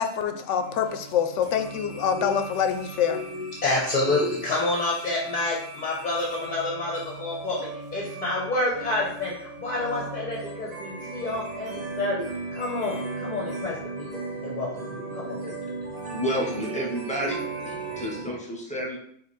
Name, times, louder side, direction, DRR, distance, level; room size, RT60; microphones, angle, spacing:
voice 1, 0.0-3.2, left 8 dB, 80° left, 8 dB, 0.9 m, -25 dB
sound 1, 0.6-18.2, right 3 dB, 40° right, 0.8 m, -37 dB
voice 2, 3.1-15.5, left 2 dB, 40° left, -3 dB, 0.9 m, -29 dB
voice 3, 16.1-17.4 17.7-19.0, equal, 5° left, -2 dB, 0.8 m, -30 dB
5.0 x 2.6 x 4.1 m, 0.65 s
omnidirectional pair, 1.2 m